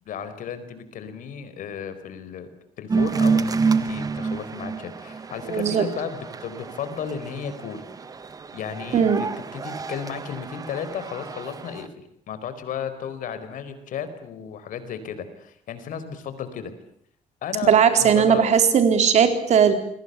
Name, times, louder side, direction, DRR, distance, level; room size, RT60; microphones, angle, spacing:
voice 1, 0.1-2.5 2.8-7.8 8.5-11.9 12.3-16.7 17.4-17.7 18.0-18.5, left 7 dB, 70° left, 11 dB, 4.6 m, -34 dB
sound 1, 2.9-11.9, right 5 dB, 25° right, 1.5 m, -28 dB
voice 2, 5.5-5.9 8.9-9.3 17.7-19.7, right 7 dB, 55° right, 8 dB, 4.2 m, -18 dB
29.0 x 22.5 x 8.2 m, 0.67 s
cardioid pair, 160°, 14 cm